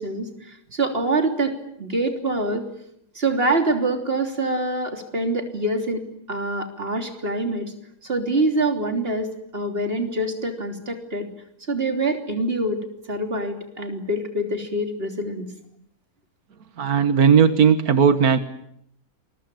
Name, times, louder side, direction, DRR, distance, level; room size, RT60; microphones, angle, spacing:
voice 1, 0.0-1.5 1.8-2.7 3.2-6.0 6.3-7.7 8.0-9.3 9.5-11.3 11.7-12.8 13.1-15.5, right 2 dB, 40° right, 5 dB, 3.6 m, -25 dB
voice 2, 16.8-18.4, right 7 dB, 85° right, 10 dB, 1.8 m, -16 dB
27.5 x 22.5 x 9.1 m, 0.74 s
omnidirectional pair, 1.5 m